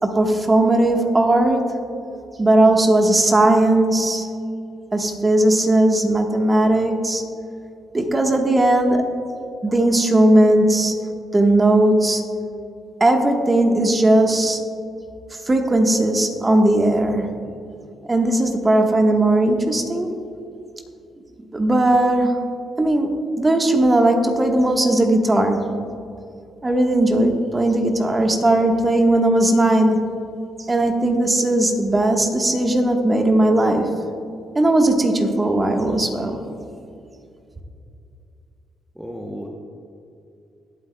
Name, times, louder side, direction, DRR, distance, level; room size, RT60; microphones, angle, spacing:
voice 1, 0.0-1.8 2.4-4.3 4.9-7.2 7.9-9.1 9.6-10.9 11.3-12.2 13.0-14.6 15.5-17.3 18.1-20.1 21.5-22.4 22.8-25.7 26.6-30.0 30.7-34.1 34.5-36.4, right 1 dB, 20° right, 3 dB, 1.3 m, -17 dB
voice 2, 38.9-39.5, equal, ahead, 0 dB, 0.9 m, -33 dB
20.0 x 8.4 x 2.3 m, 2.5 s
cardioid pair, 90°, 0 cm